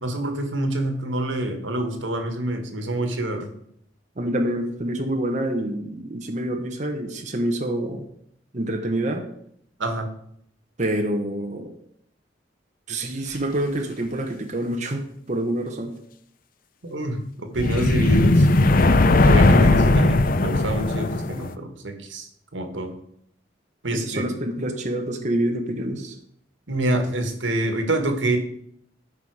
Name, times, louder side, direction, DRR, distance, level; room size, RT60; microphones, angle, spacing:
voice 1, 0.0-3.5 9.8-10.1 16.9-18.5 19.2-22.3 22.5-22.9 23.8-24.3 26.7-28.4, right 1 dB, 85° right, 6 dB, 1.7 m, -26 dB
voice 2, 4.2-8.1 8.5-9.3 10.8-11.7 12.9-16.0 23.9-26.1, right 1 dB, 40° right, 3 dB, 1.2 m, -27 dB
sound 1, 17.6-21.5, left 2 dB, 50° left, 0.6 m, -17 dB
13.5 x 5.7 x 4.9 m, 0.70 s
head